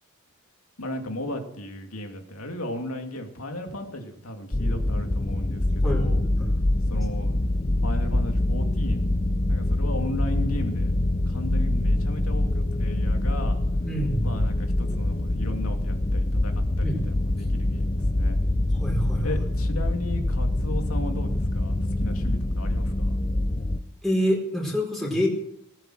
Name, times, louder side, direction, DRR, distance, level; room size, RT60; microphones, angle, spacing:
voice 1, 0.8-6.2 6.9-7.3 7.8-9.1 9.5-10.9 11.3-13.6 14.2-18.4 19.2-23.2, left 1 dB, 90° left, 4 dB, 2.6 m, -35 dB
sound 1, 4.5-23.8, left 1 dB, 30° left, 0.8 m, -25 dB
voice 2, 5.8-6.2 13.8-14.4 16.8-17.0 18.8-19.3 24.0-25.3, equal, ahead, -2 dB, 4.5 m, -26 dB
19.0 x 9.0 x 7.8 m, 0.74 s
head